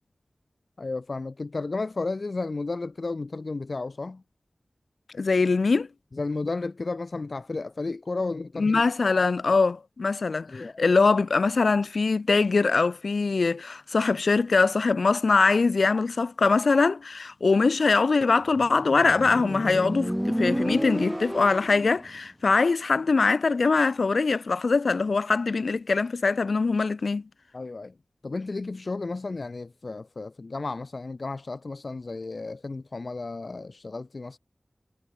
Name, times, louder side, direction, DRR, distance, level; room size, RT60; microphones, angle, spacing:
voice 1, 0.8-4.2 6.1-8.9 9.5-9.6 10.5-10.8 27.5-27.9 28.2-34.4, left 3 dB, 60° left, 1.7 m, -33 dB
voice 2, 5.1-5.9 8.6-27.2, left 4 dB, 80° left, 2.4 m, -22 dB
Motorcycle, 18.6-22.1, equal, 5° right, 4.6 m, -30 dB
wide cardioid pair, 60°, 0 cm